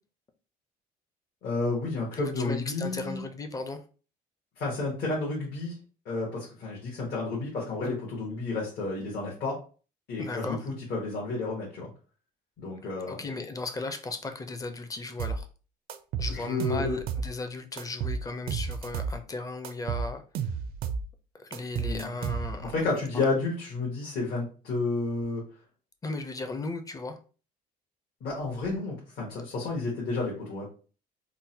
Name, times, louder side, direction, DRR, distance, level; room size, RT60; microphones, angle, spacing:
voice 1, 1.4-3.2 4.6-5.7 6.0-9.6 10.1-11.9 12.6-13.2 16.3-17.0 21.8-22.1 22.6-25.4 28.2-30.7, left 3 dB, 65° left, 1.3 m, -31 dB
voice 2, 2.2-3.8 10.2-10.6 13.1-15.5 16.2-20.2 21.3-22.7 23.1-23.3 26.0-27.2, left 3 dB, 20° left, 0.5 m, -36 dB
sound 1, 15.2-15.4 15.9-17.3 17.8-19.2 19.6-21.1 21.5-22.7, right 6 dB, 60° right, 0.4 m, -32 dB
3.7 x 2.1 x 2.8 m
cardioid pair, 110°, 17 cm